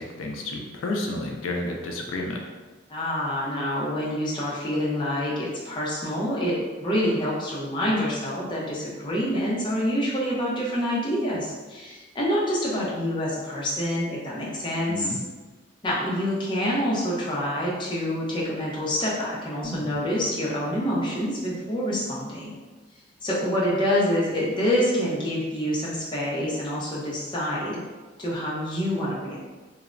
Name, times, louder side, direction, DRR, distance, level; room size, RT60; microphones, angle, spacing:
voice 1, 0.0-2.4 14.9-15.2, left 2 dB, 90° left, 1 dB, 0.4 m, -31 dB
voice 2, 2.9-15.2 15.8-22.5 23.2-27.8 28.2-29.4, equal, 25° left, -6 dB, 0.5 m, -27 dB
sound 1, 19.6-23.6 23.9-24.0, left 1 dB, 75° left, 0.9 m, -44 dB
3.1 x 2.0 x 2.5 m, 1.3 s
head